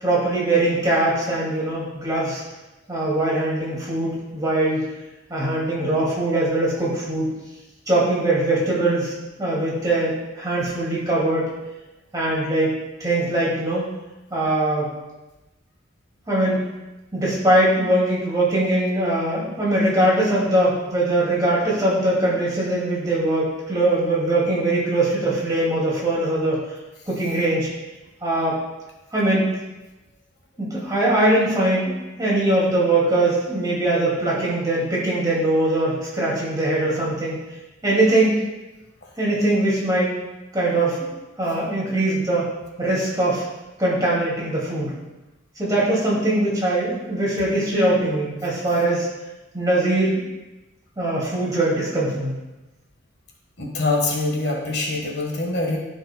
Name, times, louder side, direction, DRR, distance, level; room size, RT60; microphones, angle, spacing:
voice 1, 0.0-2.4 2.9-4.9 5.3-7.3 7.9-9.1 9.4-11.5 12.1-13.8 14.3-14.9 16.3-16.6 17.1-26.6 27.1-27.7 28.2-28.6 29.1-29.4 30.6-37.4 37.8-38.3 39.2-40.1 40.5-41.1 41.4-42.5 42.8-43.4 43.8-44.9 45.6-49.1 49.5-50.2 51.0-52.3, right 1 dB, 20° right, -6 dB, 2.5 m, -21 dB
voice 2, 53.6-55.8, left 2 dB, 55° left, -1 dB, 1.6 m, -24 dB
14.5 x 5.5 x 2.3 m, 1.1 s
head